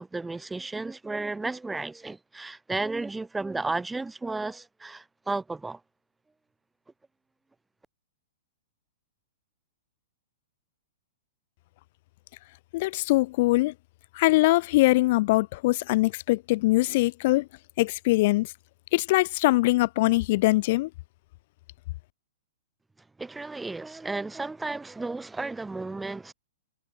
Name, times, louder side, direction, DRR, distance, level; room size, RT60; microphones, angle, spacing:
voice 1, 0.0-5.8 23.2-26.3, right 3 dB, 5° right, 3.6 m, -33 dB
voice 2, 12.7-13.7 14.1-17.5 17.8-18.5 18.9-20.9, left 20 dB, 50° left, 5.0 m, -22 dB
hypercardioid pair, 130°, 0 cm